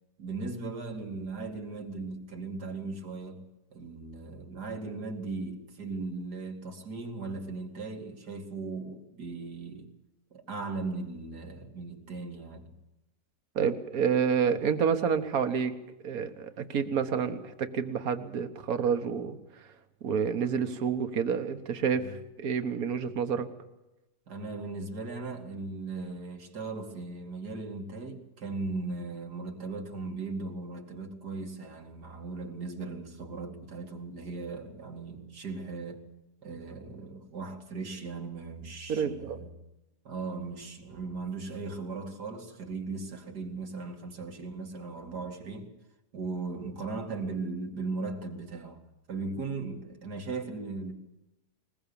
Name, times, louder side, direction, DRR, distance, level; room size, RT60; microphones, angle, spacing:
voice 1, 0.2-9.9 10.3-12.7 22.0-22.1 24.3-36.1 36.4-39.5 40.0-45.7 46.1-48.8 49.1-50.9, right 3 dB, 85° right, 2.8 m, -38 dB
voice 2, 13.6-15.7 16.0-19.4 20.0-23.5 38.9-39.4, right 7 dB, 65° right, 1.7 m, -29 dB
21.0 x 20.5 x 7.0 m
omnidirectional pair, 1.7 m